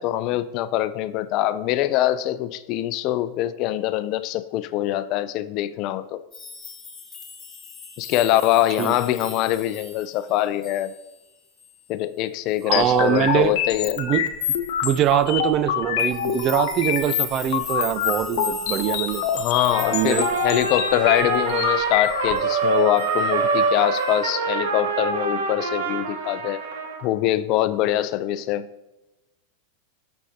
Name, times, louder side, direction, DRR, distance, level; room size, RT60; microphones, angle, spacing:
voice 1, 0.0-6.2 8.0-10.9 11.9-14.0 19.3-26.7 27.0-28.7, left 13 dB, 50° left, 14 dB, 0.5 m, -23 dB
sound 1, 6.3-11.3 11.6-11.9 12.5-12.8 16.0-21.6 22.0-22.5 23.0-23.3 23.9-24.1, left 5 dB, 20° left, 2.6 m, -40 dB
sound 2, 12.7-22.3, left 9 dB, 65° left, 0.9 m, -26 dB
voice 2, 12.7-13.5 14.0-14.3 14.8-19.3 19.9-20.3, right 11 dB, 40° right, 14 dB, 0.5 m, -23 dB
Trumpet, 19.7-27.0, right 4 dB, 80° right, 1.3 m, -25 dB
13.5 x 6.5 x 2.9 m, 0.99 s
hypercardioid pair, 110°, 0 cm